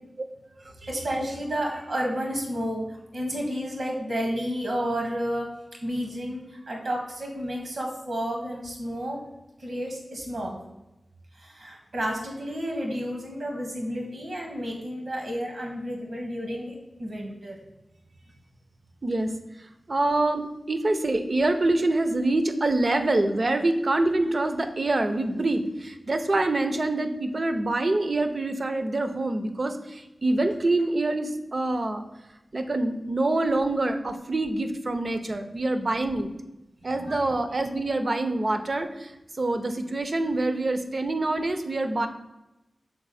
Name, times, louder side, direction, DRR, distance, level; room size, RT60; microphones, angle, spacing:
voice 1, 0.9-2.8 3.1-5.5 5.8-9.2 9.6-10.6 11.4-17.5 36.9-37.3, equal, 85° right, 0 dB, 1.3 m, -31 dB
voice 2, 19.0-19.3 19.9-32.0 32.5-36.3 36.8-39.1 39.4-42.1, right 2 dB, 50° right, 7 dB, 0.6 m, -25 dB
5.9 x 4.1 x 4.1 m, 0.97 s
wide cardioid pair, 75°, 0 cm